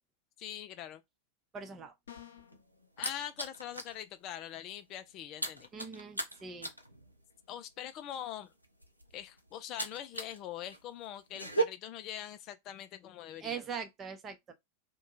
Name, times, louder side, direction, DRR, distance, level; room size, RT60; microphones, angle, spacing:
voice 1, 0.4-1.0 3.0-5.7 7.5-8.5 9.1-13.6, left 11 dB, 35° left, 0.3 m, -43 dB
voice 2, 1.5-1.9 5.7-6.7 13.4-14.5, right 6 dB, 25° right, 0.6 m, -41 dB
sound 1, 2.1-2.6, left 9 dB, 65° left, 0.9 m, -50 dB
sound 2, 2.2-4.0 4.3-4.6 4.8-10.4 10.7-11.6, right 3 dB, 90° right, 0.5 m, -37 dB
2.7 x 2.2 x 3.9 m
figure-of-eight pair, 90°, 0 cm